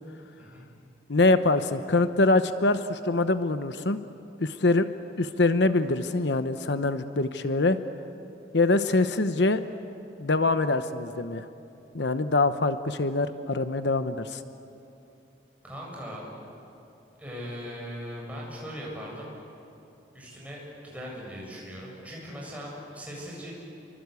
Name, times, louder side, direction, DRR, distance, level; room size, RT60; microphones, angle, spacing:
voice 1, 1.1-4.0 4.4-4.9 5.2-7.8 8.5-9.6 10.2-11.5 11.9-14.4, left 2 dB, 75° left, 10 dB, 0.9 m, -24 dB
voice 2, 15.6-16.2 17.2-19.3 20.1-23.5, equal, 10° right, -4 dB, 7.8 m, -39 dB
29.5 x 24.0 x 8.3 m, 2.8 s
head